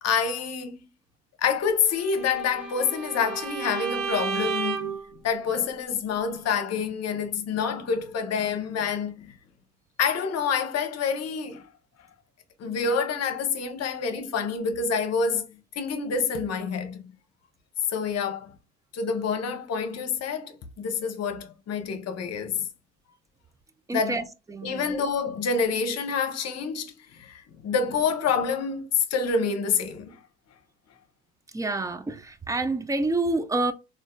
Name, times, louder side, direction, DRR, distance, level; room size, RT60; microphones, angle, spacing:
voice 1, 0.0-0.8 1.4-5.0 5.2-9.3 10.0-11.6 12.6-17.1 17.9-18.5 18.9-22.6 23.9-24.3 24.6-30.2, left 5 dB, 50° left, 0.8 m, -27 dB
Bowed string instrument, 2.0-5.1, right 6 dB, 85° right, 0.6 m, -32 dB
voice 2, 23.9-24.2 24.5-25.0 31.5-33.7, right 2 dB, 10° right, 0.4 m, -28 dB
3.5 x 2.5 x 2.2 m
supercardioid pair, 75°, 33 cm